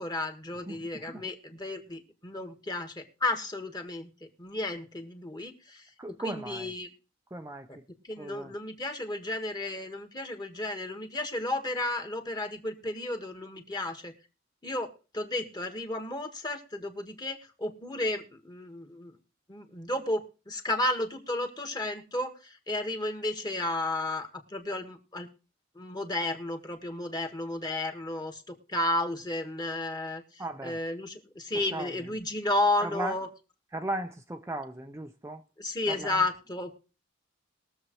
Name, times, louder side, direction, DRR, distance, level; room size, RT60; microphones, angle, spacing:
voice 1, 0.0-6.9 8.0-14.1 14.6-19.2 19.5-25.3 25.7-28.4 28.7-30.2 30.6-33.3 35.6-36.8, left 2 dB, 20° left, 1.6 m, -33 dB
voice 2, 0.7-1.2 6.0-6.7 7.3-7.7 8.2-8.5 30.4-30.8 31.7-32.0 32.8-33.2 33.7-35.4 35.9-36.2, right 2 dB, 15° right, 0.5 m, -37 dB
21.5 x 7.2 x 3.1 m
head